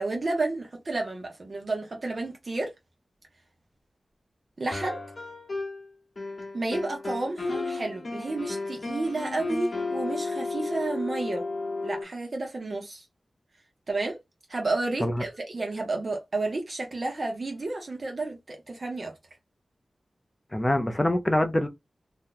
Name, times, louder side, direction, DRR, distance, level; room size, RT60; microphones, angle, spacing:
voice 1, 0.0-2.7 4.6-5.0 6.5-11.4 11.8-13.0 13.9-14.2 14.5-19.1, right 2 dB, 45° right, 0.9 m, -31 dB
sound 1, 4.7-5.9 6.2-12.0, left 3 dB, 50° left, 1.0 m, -33 dB
voice 2, 20.5-21.7, left 1 dB, 15° left, 0.5 m, -24 dB
2.7 x 2.2 x 3.9 m
wide cardioid pair, 110°, 0 cm